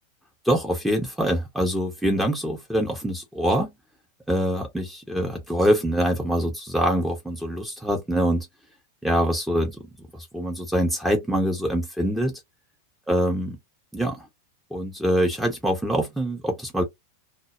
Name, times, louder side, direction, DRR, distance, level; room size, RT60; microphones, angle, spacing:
voice 1, 0.4-3.7 4.3-8.5 9.0-9.8 10.1-12.4 13.1-13.6 13.9-14.3 14.7-16.8, equal, 5° right, 0.6 m, -24 dB
2.1 x 2.0 x 2.9 m
figure-of-eight pair, 90°, 0 cm